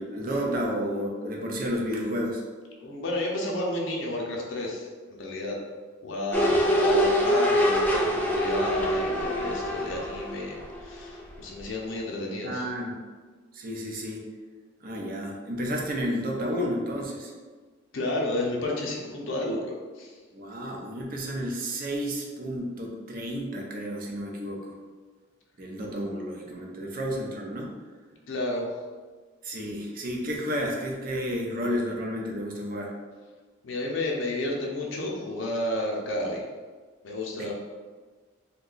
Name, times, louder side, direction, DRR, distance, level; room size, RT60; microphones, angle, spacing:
voice 1, 0.0-2.4 12.4-13.0 13.5-14.2 14.8-17.3 20.3-24.7 25.6-27.7 29.4-32.9 37.3-37.5, equal, 45° right, -1 dB, 0.5 m, -31 dB
voice 2, 2.8-5.6 6.0-12.7 17.9-20.2 28.3-28.7 33.6-36.4 37.0-37.5, left 1 dB, 70° left, -1 dB, 0.5 m, -31 dB
sound 1, 6.3-11.3 11.6-11.7, equal, 10° left, 0.3 m, -25 dB
2.7 x 2.3 x 3.8 m, 1.4 s
head